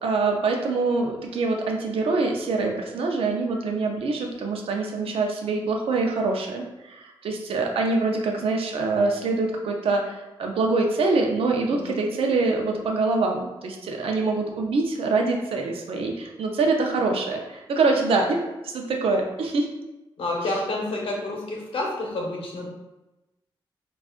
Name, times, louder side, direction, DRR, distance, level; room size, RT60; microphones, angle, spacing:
voice 1, 0.0-19.7, right 3 dB, 90° right, 2 dB, 0.5 m, -25 dB
voice 2, 20.2-22.7, left 2 dB, 70° left, -1 dB, 0.7 m, -29 dB
2.4 x 2.3 x 3.6 m, 1.0 s
wide cardioid pair, 170°, 9 cm